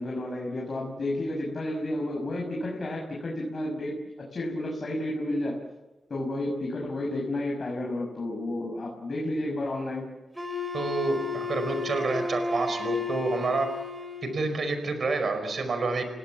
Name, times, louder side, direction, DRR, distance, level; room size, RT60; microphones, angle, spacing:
voice 1, 0.0-5.6 6.1-10.1, left 1 dB, 50° left, 0 dB, 6.0 m, -31 dB
Wind instrument woodwind instrument, 10.4-14.5, left 4 dB, 10° right, 4.5 m, -33 dB
voice 2, 10.7-13.7 14.2-16.0, right 3 dB, 65° right, 8 dB, 4.9 m, -28 dB
28.0 x 17.5 x 7.3 m, 1.1 s
cardioid pair, 65°, 0 cm